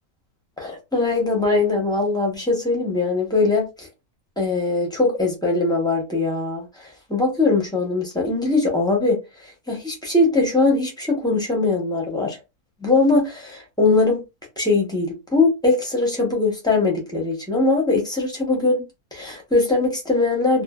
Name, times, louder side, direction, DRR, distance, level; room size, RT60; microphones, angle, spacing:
voice 1, 0.6-3.9 4.4-6.7 7.1-9.2 9.7-12.4 12.8-14.2 14.6-18.8 19.1-20.6, left 3 dB, 5° left, 0.5 m, -21 dB
2.5 x 2.3 x 2.3 m
omnidirectional pair, 1.7 m